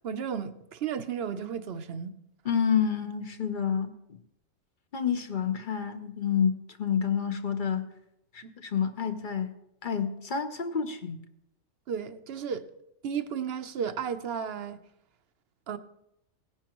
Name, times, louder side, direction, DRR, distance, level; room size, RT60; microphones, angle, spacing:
voice 1, 0.0-2.1 8.4-8.5 11.9-12.7 13.0-14.8 15.7-15.8, right 7 dB, 55° right, 0.8 m, -33 dB
voice 2, 2.4-3.9 4.9-7.9 8.3-9.5 9.8-11.2, left 7 dB, 45° left, 0.9 m, -29 dB
17.5 x 10.5 x 3.0 m
omnidirectional pair, 1.4 m